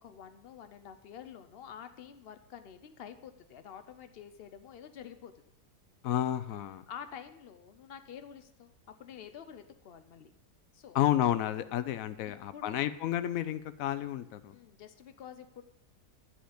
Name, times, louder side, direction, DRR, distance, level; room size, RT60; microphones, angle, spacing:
voice 1, 0.0-5.3 6.9-8.7 9.0-10.3 10.7-11.0 12.2-12.8 14.5-15.6, left 8 dB, 85° left, 9 dB, 0.5 m, -48 dB
voice 2, 6.0-6.8 10.9-14.6, left 12 dB, 70° left, 13 dB, 1.0 m, -31 dB
10.5 x 7.8 x 5.0 m, 0.78 s
omnidirectional pair, 1.7 m